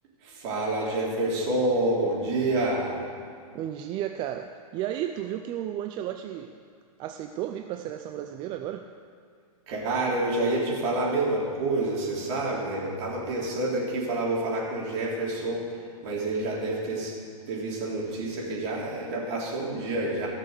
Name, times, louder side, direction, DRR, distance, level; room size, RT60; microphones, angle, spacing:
voice 1, 0.2-2.9 9.7-17.1 17.5-20.3, right 2 dB, 45° right, -4 dB, 3.9 m, -28 dB
voice 2, 3.5-6.6 7.0-8.9, right 11 dB, 25° right, 6 dB, 0.4 m, -33 dB
16.5 x 6.7 x 6.6 m, 2.2 s
hypercardioid pair, 135°, 20 cm